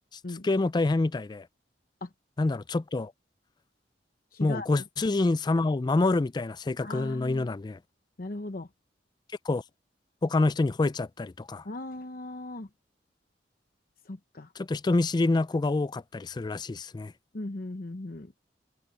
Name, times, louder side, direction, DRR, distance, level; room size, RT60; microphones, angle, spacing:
voice 1, 0.4-1.5 2.4-3.1 4.4-7.8 9.5-9.6 10.2-11.6 14.6-17.1, left 2 dB, 25° left, 0.4 m, -27 dB
voice 2, 4.3-4.7 6.8-7.5 8.2-8.7 11.6-12.7 14.1-14.5 17.3-18.3, left 2 dB, 55° left, 0.9 m, -38 dB
head